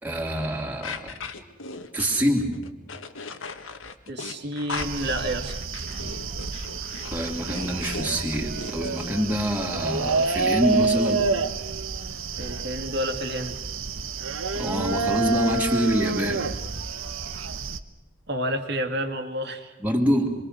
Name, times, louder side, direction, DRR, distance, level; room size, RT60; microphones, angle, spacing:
voice 1, 0.0-1.2 1.9-2.5 7.1-11.3 14.5-16.5 19.8-20.3, equal, 10° right, 0 dB, 3.0 m, -25 dB
sound 1, 0.8-9.1, left 4 dB, 75° left, 1.7 m, -38 dB
voice 2, 4.1-5.6 12.4-13.6 18.3-19.7, right 1 dB, 55° right, 6 dB, 2.6 m, -29 dB
sound 2, 4.8-17.8, right 4 dB, 85° right, 1.3 m, -29 dB
28.0 x 23.0 x 6.6 m, 0.98 s
head